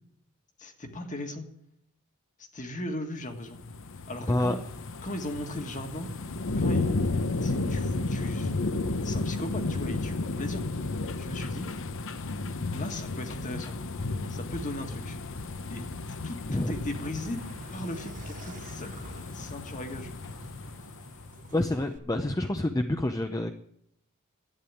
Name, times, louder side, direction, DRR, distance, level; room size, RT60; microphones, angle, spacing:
voice 1, 0.6-1.4 2.5-3.6 4.1-4.6 5.0-6.1 6.6-6.9 7.4-8.5 9.0-10.6 11.2-11.7 12.7-13.8 14.3-15.2 15.7-15.9 16.2-17.4 17.7-20.1, left 1 dB, 35° left, 6 dB, 1.7 m, -37 dB
sound 1, 3.4-21.5 22.0-22.1, left 2 dB, 60° left, 0.9 m, -33 dB
voice 2, 4.3-4.6 16.5-16.7 21.5-23.5, left 1 dB, 15° left, 6 dB, 0.6 m, -27 dB
sound 2, 16.9-22.0, right 3 dB, 35° right, 0.7 m, -49 dB
11.5 x 9.0 x 9.9 m, 0.75 s
head